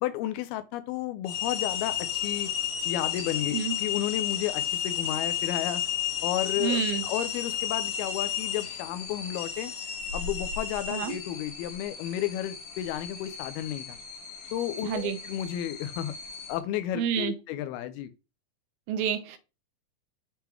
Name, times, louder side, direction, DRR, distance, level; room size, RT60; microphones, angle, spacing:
voice 1, 0.0-2.5 2.9-5.8 6.2-9.7 10.1-14.0 14.5-16.1 16.5-18.1, left 12 dB, 90° left, 2.6 m, -32 dB
sound 1, 1.3-16.6, left 9 dB, 65° left, 2.5 m, -33 dB
voice 2, 6.6-7.1 10.9-11.1 14.8-15.2 16.9-17.4 18.9-19.4, right 8 dB, 80° right, 2.7 m, -29 dB
7.4 x 3.7 x 4.4 m
omnidirectional pair, 4.3 m